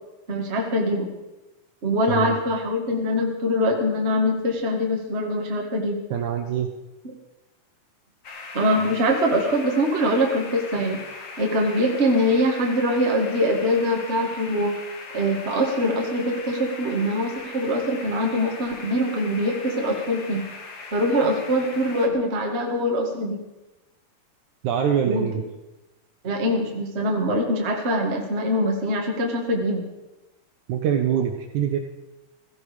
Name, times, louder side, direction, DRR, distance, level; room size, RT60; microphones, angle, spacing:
voice 1, 0.3-1.1 1.8-6.0 8.5-11.0 11.4-14.8 15.1-20.4 20.9-23.4 25.0-25.2 26.2-29.8, equal, 40° right, 1 dB, 0.9 m, -23 dB
voice 2, 6.1-6.7 24.6-25.4 30.7-31.8, right 8 dB, 70° right, 5 dB, 1.9 m, -24 dB
sound 1, 8.2-22.1, left 4 dB, 55° left, 1.3 m, -40 dB
16.5 x 15.5 x 5.1 m, 1.0 s
omnidirectional pair, 4.6 m